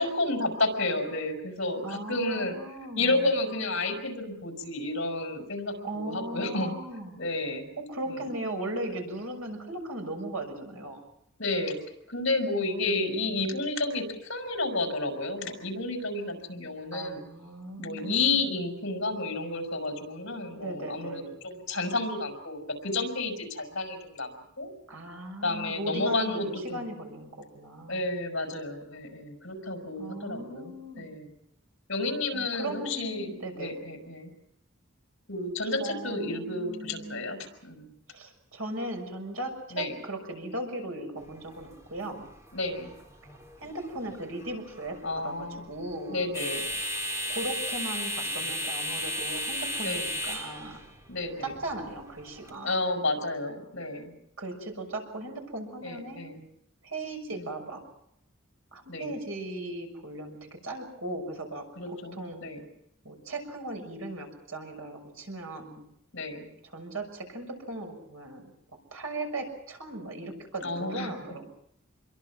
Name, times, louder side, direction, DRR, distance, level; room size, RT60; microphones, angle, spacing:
voice 1, 0.0-2.6 3.0-6.7 7.2-7.7 8.1-8.3 11.4-11.8 12.1-17.2 17.8-24.7 25.4-26.8 27.9-31.3 31.9-34.3 35.3-37.9 39.7-39.9 42.5-42.9 45.0-45.6 46.1-46.7 49.8-50.1 51.1-51.5 52.6-54.1 55.8-56.4 57.3-57.4 58.9-59.1 61.8-62.6 66.1-66.5 70.6-71.1, left 2 dB, 60° left, 4 dB, 5.5 m, -31 dB
voice 2, 1.8-3.3 5.8-7.2 7.8-11.0 12.9-13.3 16.9-18.4 20.6-21.3 24.9-28.0 30.0-31.1 32.3-33.8 35.6-37.3 38.1-42.3 43.6-46.3 47.3-50.8 51.4-52.8 54.4-56.2 56.8-57.8 58.7-62.5 63.0-65.8 66.7-68.5 68.9-71.5, right 1 dB, 85° right, 3 dB, 6.4 m, -38 dB
sound 1, 41.2-52.5, equal, 15° right, 3.5 m, -36 dB
27.5 x 22.5 x 6.0 m, 0.73 s
head